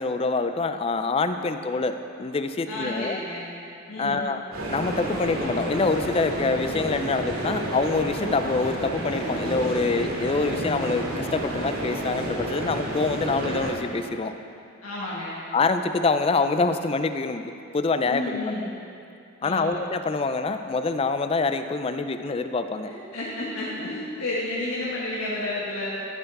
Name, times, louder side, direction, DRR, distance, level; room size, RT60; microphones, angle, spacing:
voice 1, 0.0-3.2 4.0-4.4 4.7-14.3 15.5-18.4 19.4-22.9, left 3 dB, 25° left, 9 dB, 0.3 m, -25 dB
voice 2, 2.7-3.5 3.9-4.3 14.3-14.4 14.8-15.4 18.1-18.7 19.4-19.8 22.8-25.9, left 2 dB, 85° left, -7 dB, 1.4 m, -31 dB
sound 1, 4.5-13.7, right 1 dB, 80° right, 2.5 m, -30 dB
14.5 x 5.8 x 4.1 m, 2.6 s
head